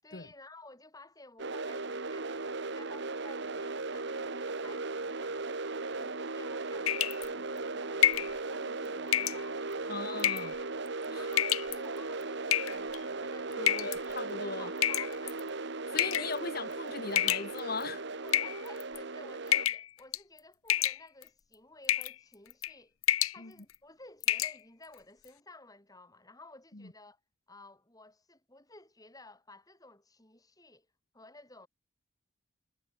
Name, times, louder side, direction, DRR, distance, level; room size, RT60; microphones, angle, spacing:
voice 1, 0.0-10.2 11.0-14.1 14.4-15.6 18.1-23.0 23.3-27.2 27.5-30.9 31.1-31.7, left 2 dB, 15° left, 6.8 m, -54 dB
sound 1, 1.4-19.7, right 3 dB, 55° right, 1.2 m, -37 dB
sound 2, 6.9-7.3 8.0-8.3 9.1-9.4 10.2-10.6 11.3-11.8 12.5-13.0 13.7-14.0 14.8-15.4 16.0-16.3 17.2-17.8 18.3-19.0 19.5-19.9 20.1-20.4 20.7-21.3 21.9-22.2 22.5-22.7 23.0-23.4 23.7-23.8 24.2-24.6, left 12 dB, 85° left, 0.8 m, -28 dB
voice 2, 9.9-10.5 11.1-11.3 13.6-14.7 15.9-18.0 23.4-23.5, left 4 dB, 45° left, 1.4 m, -38 dB
head